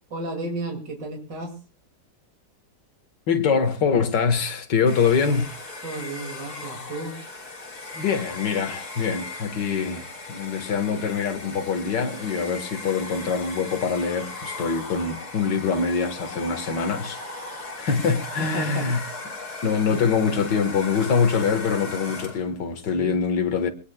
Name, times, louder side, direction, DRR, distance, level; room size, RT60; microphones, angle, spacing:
voice 1, 0.1-1.5 5.8-7.2 18.4-18.9 19.9-20.0 22.9-23.1, right 2 dB, 85° right, 3.2 m, -32 dB
voice 2, 3.3-5.6 7.9-17.2 17.8-19.0 19.6-23.7, left 5 dB, 85° left, 2.1 m, -24 dB
Domestic sounds home sounds, 4.9-22.5, left 3 dB, 60° left, 3.8 m, -37 dB
23.5 x 19.0 x 2.3 m
omnidirectional pair, 1.8 m